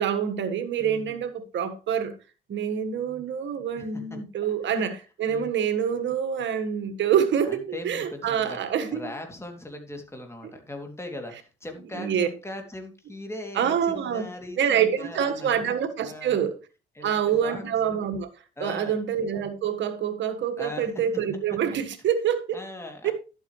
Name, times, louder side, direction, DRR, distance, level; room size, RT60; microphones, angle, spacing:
voice 1, 0.0-2.1 2.5-9.1 11.9-12.3 13.5-14.2 14.6-16.6 17.0-18.3 18.6-22.6 23.0-23.1, right 8 dB, 65° right, 1.6 m, -26 dB
voice 2, 0.8-1.2 3.8-4.0 4.6-4.8 5.3-5.5 7.5-8.6 8.9-15.6 16.0-16.4 16.9-18.0 18.6-19.0 20.6-20.9 22.5-23.1, left 1 dB, 15° left, 2.8 m, -39 dB
11.5 x 8.2 x 3.2 m
cardioid pair, 90°, 20 cm